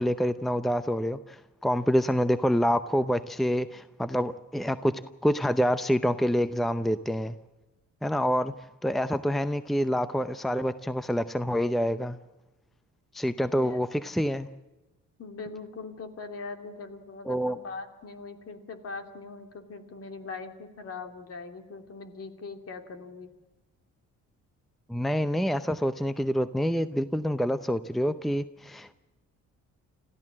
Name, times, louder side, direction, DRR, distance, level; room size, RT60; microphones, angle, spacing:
voice 1, 0.0-4.9 5.2-7.3 8.0-8.5 8.8-12.2 13.1-14.5 17.3-17.6 24.9-28.9, equal, ahead, 13 dB, 0.7 m, -27 dB
voice 2, 15.2-23.3, left 4 dB, 50° left, 6 dB, 2.9 m, -41 dB
26.5 x 15.0 x 7.5 m, 1.1 s
cardioid pair, 90°, 30 cm